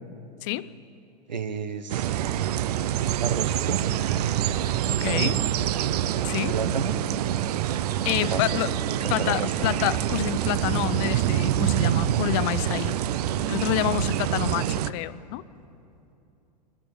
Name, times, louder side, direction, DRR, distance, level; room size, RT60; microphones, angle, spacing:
voice 1, 0.4-0.7 4.9-5.4 6.2-6.6 8.0-8.8 9.1-13.0 13.5-15.5, left 15 dB, 50° left, 0.6 m, -28 dB
voice 2, 1.3-2.0 3.2-3.8 5.0-5.4 6.5-7.0 8.0-8.4 8.8-9.7, right 6 dB, 90° right, 1.2 m, -30 dB
sound 1, 1.9-14.9, right 11 dB, 65° right, 0.7 m, -26 dB
23.0 x 13.5 x 8.6 m
hypercardioid pair, 105°, 21 cm